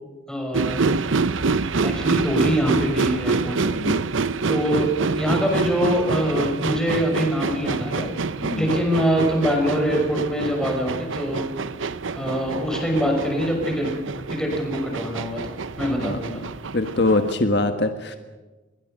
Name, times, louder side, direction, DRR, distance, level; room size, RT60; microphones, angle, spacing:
voice 1, 0.3-0.9 1.8-3.7 4.5-8.1 8.6-11.4 12.2-13.9 14.3-16.4, equal, 5° left, 1 dB, 5.8 m, -24 dB
sound 1, 0.5-17.3, right 4 dB, 85° right, 0.8 m, -26 dB
voice 2, 16.0-16.4 16.7-18.2, left 2 dB, 55° left, 7 dB, 1.5 m, -23 dB
27.0 x 22.0 x 6.6 m, 1.2 s
head